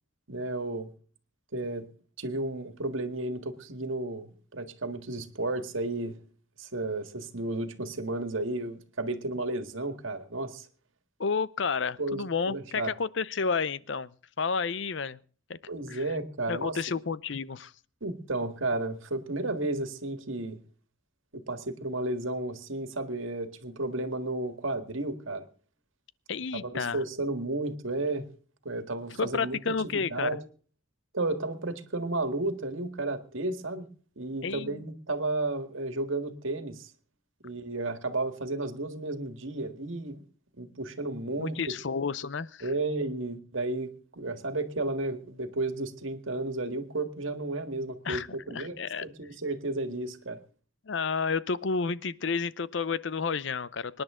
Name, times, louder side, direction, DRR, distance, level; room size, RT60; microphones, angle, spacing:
voice 1, 0.3-0.9 1.5-1.9 2.2-6.1 6.6-10.7 12.0-12.9 15.7-16.8 18.0-20.6 21.3-25.4 26.6-28.3 28.7-30.4 31.1-33.9 34.2-36.9 37.4-40.2 40.6-41.6 42.6-50.4, right 2 dB, 75° right, 1.8 m, -33 dB
voice 2, 11.2-14.1 14.4-15.2 15.5-15.6 15.9-16.0 16.5-17.7 26.3-27.0 29.2-30.4 34.4-34.8 41.4-42.7 48.0-48.3 48.5-49.0 50.9-54.0, left 5 dB, 65° left, 0.6 m, -31 dB
25.5 x 10.5 x 3.7 m
head